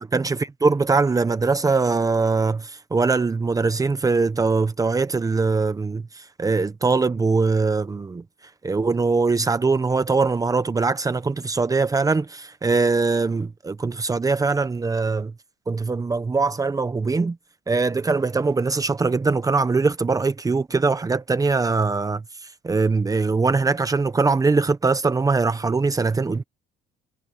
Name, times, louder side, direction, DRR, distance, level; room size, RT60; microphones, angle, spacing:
voice 1, 0.0-8.2 8.6-15.3 15.7-17.4 17.7-22.2 22.6-26.4, right 4 dB, 20° right, 1.1 m, -22 dB
cardioid pair, 110°, 17 cm